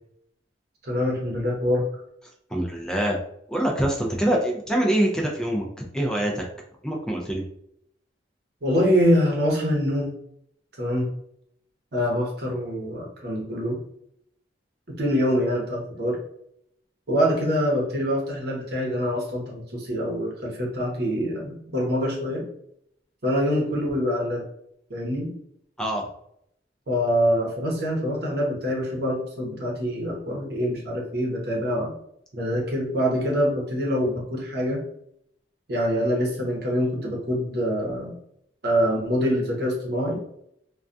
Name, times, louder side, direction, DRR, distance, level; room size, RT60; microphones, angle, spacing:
voice 1, 0.8-1.9 8.6-10.1 10.8-11.1 11.9-13.8 14.9-16.2 17.1-22.5 23.2-24.4 24.9-25.3 26.9-31.9 32.3-34.8 35.7-38.2 38.6-40.2, equal, 65° right, -2 dB, 0.8 m, -25 dB
voice 2, 2.5-3.2 3.5-5.7 5.9-6.4 6.8-7.4 25.8-26.1, right 1 dB, 5° left, -1 dB, 0.3 m, -24 dB
2.3 x 2.2 x 2.5 m, 0.71 s
head